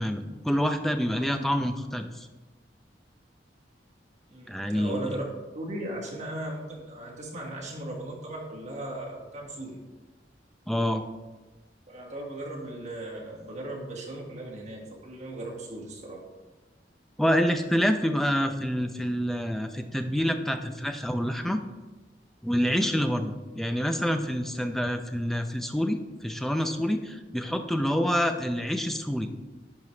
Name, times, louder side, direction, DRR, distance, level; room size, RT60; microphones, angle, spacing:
voice 1, 0.0-2.3 4.5-5.1 10.7-11.0 17.2-21.6 22.4-29.3, equal, ahead, 7 dB, 0.4 m, -27 dB
voice 2, 4.3-5.2 5.5-9.8 11.9-16.2, right 1 dB, 40° right, -3 dB, 1.7 m, -37 dB
10.5 x 4.9 x 3.2 m, 1.2 s
head